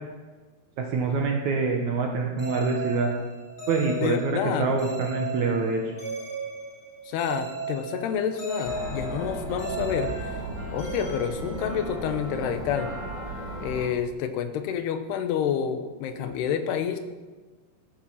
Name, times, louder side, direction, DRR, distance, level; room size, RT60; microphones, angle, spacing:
voice 1, 0.8-3.1 3.7-5.9, right 4 dB, 65° right, 2 dB, 2.0 m, -25 dB
sound 1, 2.4-12.2, right 3 dB, 30° left, 1.8 m, -37 dB
voice 2, 4.0-4.7 7.1-10.3 10.7-12.9 13.6-17.0, left 8 dB, 85° left, 9 dB, 3.0 m, -28 dB
sound 2, 8.6-13.9, right 1 dB, 10° right, 3.8 m, -35 dB
15.0 x 9.7 x 5.7 m, 1.3 s
omnidirectional pair, 4.6 m